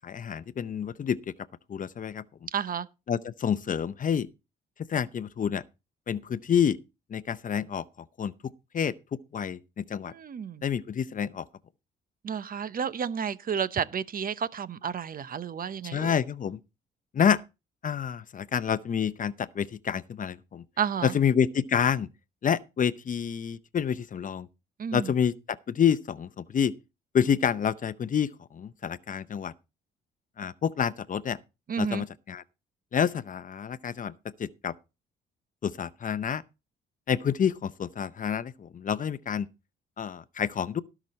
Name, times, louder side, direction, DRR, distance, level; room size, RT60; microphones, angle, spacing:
voice 1, 0.0-1.3 1.7-2.2 3.1-4.3 4.9-5.6 6.1-6.8 7.1-7.8 8.2-8.3 8.7-10.1 10.6-11.4 15.8-16.6 17.1-17.4 17.8-20.6 21.0-22.1 22.4-24.5 24.9-26.7 27.1-29.5 30.4-31.4 31.8-32.4 32.9-34.1 34.4-34.7 35.6-36.4 37.1-39.5 40.0-40.8, left 8 dB, 40° left, 0.7 m, -28 dB
voice 2, 2.5-2.9 10.1-10.6 12.2-16.1 20.8-21.1 24.8-25.1 31.7-32.0, right 7 dB, 45° right, 0.9 m, -31 dB
17.5 x 6.0 x 4.2 m
cardioid pair, 90°, 20 cm